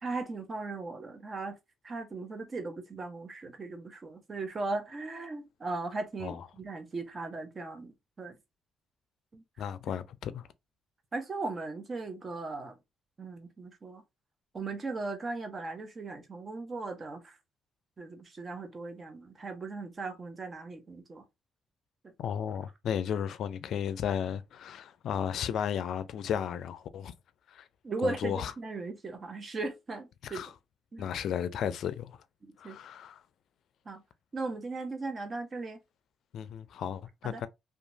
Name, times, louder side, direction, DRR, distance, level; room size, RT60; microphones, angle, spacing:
voice 1, 0.0-1.6 1.8-8.4 9.3-9.4 11.1-12.8 13.2-14.0 14.5-17.4 18.0-21.2 27.8-30.4 30.9-31.1 32.4-32.8 33.9-34.0 34.3-35.8 37.2-37.4, right 3 dB, 35° right, 0.8 m, -38 dB
voice 2, 9.6-10.5 22.2-27.1 27.5-27.7 28.0-28.5 30.2-30.5 31.0-32.2 32.6-33.2 36.3-37.5, left 8 dB, 70° left, 0.4 m, -34 dB
2.8 x 2.3 x 2.6 m
cardioid pair, 90°, 0 cm